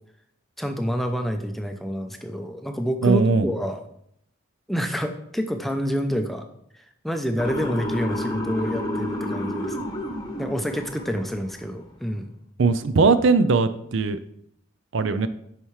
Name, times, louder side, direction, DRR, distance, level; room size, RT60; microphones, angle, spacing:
voice 1, 0.6-3.8 4.7-6.4 7.0-9.9 10.4-12.3, equal, ahead, 5 dB, 0.5 m, -28 dB
voice 2, 3.0-3.5 12.6-14.2 14.9-15.3, right 4 dB, 65° right, 12 dB, 0.5 m, -19 dB
Motor vehicle (road) / Siren, 7.4-11.5, left 1 dB, 20° left, 0.9 m, -30 dB
9.0 x 5.6 x 3.2 m, 0.72 s
head